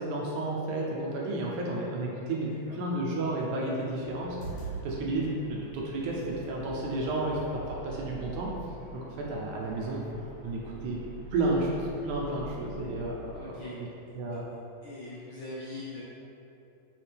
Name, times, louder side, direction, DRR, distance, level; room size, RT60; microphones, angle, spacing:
voice 1, 0.0-8.5 8.9-10.0 10.4-11.0 11.3-13.5 14.2-14.4, right 2 dB, 75° right, -3 dB, 2.1 m, -32 dB
sound 1, 4.0-13.4, right 2 dB, 55° right, 1.9 m, -45 dB
sound 2, 4.4-4.8 5.4-6.4 7.5-7.6 8.1-8.4 8.8-9.1 9.5-9.6, right 6 dB, 60° left, 2.0 m, -43 dB
voice 2, 13.3-13.8 14.8-16.0, left 2 dB, 75° left, -9 dB, 1.2 m, -42 dB
8.6 x 4.2 x 3.4 m, 2.7 s
omnidirectional pair, 3.8 m